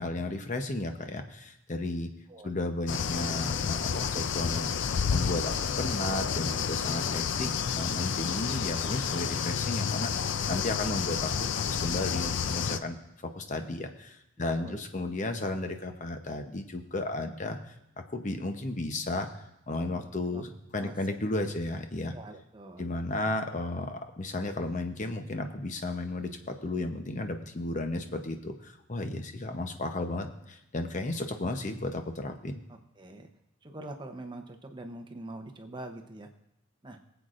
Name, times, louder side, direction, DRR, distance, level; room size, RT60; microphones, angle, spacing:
voice 1, 0.0-2.1 2.4-4.7 5.1-10.1 10.5-13.0 13.2-19.3 19.7-22.1 22.8-32.6, left 2 dB, 35° left, 6 dB, 0.8 m, -34 dB
sound 1, 2.9-12.8, left 7 dB, 60° left, 0.4 m, -30 dB
voice 2, 14.4-14.8 19.9-20.1 20.3-20.4 20.8-21.0 22.1-22.9 32.7-33.3 33.6-36.3 36.8-37.0, right 1 dB, 20° right, 4 dB, 0.8 m, -44 dB
22.0 x 8.0 x 2.5 m, 0.85 s
head